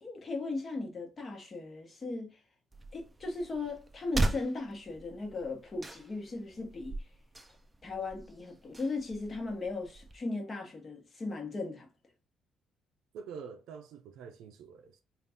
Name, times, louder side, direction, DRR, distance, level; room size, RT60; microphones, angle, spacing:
voice 1, 0.0-2.4 2.9-6.9 7.8-11.9, left 3 dB, 30° left, 1.1 m, -37 dB
sound 1, 2.7-10.2, right 2 dB, 10° right, 0.4 m, -39 dB
voice 2, 13.1-15.0, right 6 dB, 80° right, 0.4 m, -46 dB
3.9 x 2.4 x 3.4 m
cardioid pair, 140°, 0 cm